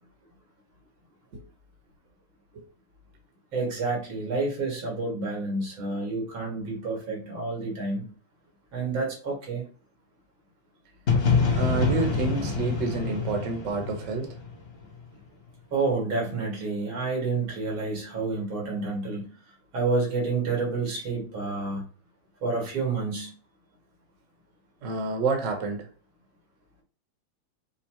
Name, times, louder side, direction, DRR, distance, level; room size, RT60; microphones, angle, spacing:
voice 1, 3.5-8.1 8.7-9.6 15.7-19.3 19.7-21.8 22.4-23.3, right 3 dB, 85° right, -1 dB, 2.6 m, -29 dB
sound 1, 11.1-14.9, left 5 dB, 45° left, 0.7 m, -26 dB
voice 2, 11.5-14.3 24.8-25.9, right 4 dB, 50° right, 3 dB, 1.1 m, -28 dB
5.5 x 2.0 x 4.3 m, 0.41 s
omnidirectional pair, 2.2 m